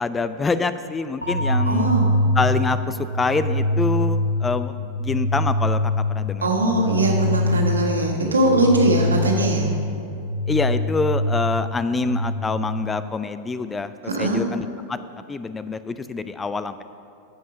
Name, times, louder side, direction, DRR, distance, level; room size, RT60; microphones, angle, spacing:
voice 1, 0.0-1.9 2.4-6.5 10.5-13.9 14.2-15.0 15.3-16.8, left 4 dB, 15° left, 12 dB, 0.4 m, -26 dB
sound 1, 1.2-13.2, left 1 dB, 80° left, 0.6 m, -24 dB
voice 2, 1.6-2.1 6.4-9.7 14.1-14.4, right 1 dB, 75° right, -1 dB, 1.9 m, -20 dB
14.0 x 5.5 x 6.1 m, 2.6 s
figure-of-eight pair, 90°, 0 cm